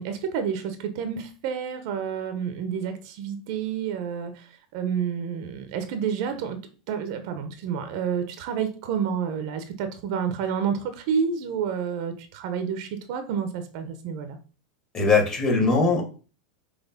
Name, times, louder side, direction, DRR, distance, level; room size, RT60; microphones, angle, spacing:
voice 1, 0.0-4.5 4.7-6.6 6.9-14.4, right 7 dB, 50° right, 9 dB, 1.0 m, -29 dB
voice 2, 14.9-16.0, left 4 dB, 20° left, 1 dB, 2.1 m, -20 dB
6.2 x 3.3 x 5.3 m, 0.36 s
supercardioid pair, 160°, 4 cm